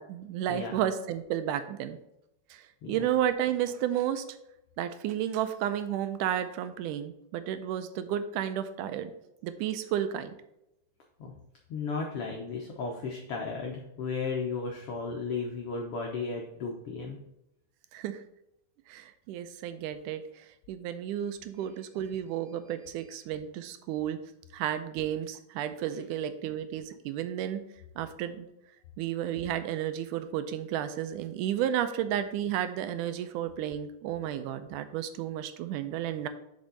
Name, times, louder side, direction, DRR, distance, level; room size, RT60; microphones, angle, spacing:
voice 1, 0.0-2.0 2.5-4.2 4.8-9.1 9.4-10.3 17.9-18.2 18.9-24.2 24.5-27.6 28.0-28.5 29.0-36.3, right 10 dB, 85° right, 10 dB, 2.2 m, -32 dB
voice 2, 11.7-17.2, left 4 dB, 65° left, 0 dB, 1.5 m, -34 dB
7.0 x 5.4 x 3.9 m, 0.84 s
omnidirectional pair, 3.6 m